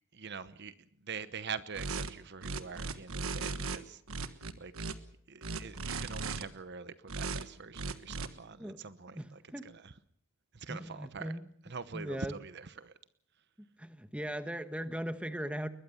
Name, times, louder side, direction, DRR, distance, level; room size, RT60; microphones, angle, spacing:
voice 1, 0.1-4.9 5.3-9.9 10.5-11.4 11.6-12.9, right 5 dB, 55° right, 14 dB, 1.0 m, -44 dB
sound 1, 1.8-2.1 2.4-3.8 4.1-4.9 5.4-6.4 7.1-7.4 7.7-8.3, right 4 dB, 85° right, 1.4 m, -37 dB
voice 2, 10.7-11.4 11.9-12.3 13.8-15.7, equal, 5° right, 10 dB, 1.2 m, -38 dB
21.5 x 21.0 x 7.1 m, 0.66 s
head